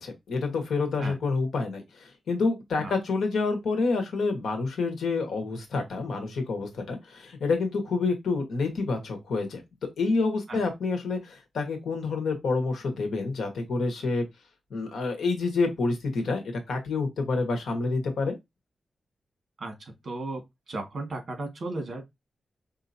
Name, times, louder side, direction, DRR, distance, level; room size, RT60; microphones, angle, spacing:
voice 1, 0.0-9.6 10.0-14.2 14.7-18.3, left 3 dB, 85° left, 1.3 m, -28 dB
voice 2, 20.0-20.4 20.7-22.1, right 2 dB, 45° right, 1.7 m, -34 dB
5.0 x 2.8 x 2.6 m
wide cardioid pair, 150°, 0 cm